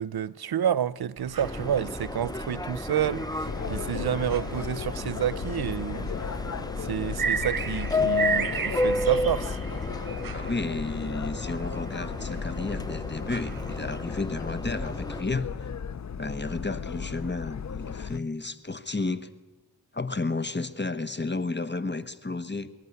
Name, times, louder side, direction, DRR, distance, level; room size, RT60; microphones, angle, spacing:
voice 1, 0.0-6.3 6.8-9.6, right 9 dB, 85° right, 0.7 m, -29 dB
sound 1, 1.2-14.0, right 6 dB, 65° right, 1.1 m, -36 dB
Subway metro underground, 1.4-15.2, left 2 dB, 10° left, 0.6 m, -33 dB
sound 2, 3.4-18.2, left 6 dB, 50° left, 0.6 m, -36 dB
voice 2, 10.0-15.7 16.2-19.3 19.9-22.7, left 3 dB, 30° left, 1.3 m, -32 dB
25.0 x 11.5 x 9.8 m
cardioid pair, 50°, 36 cm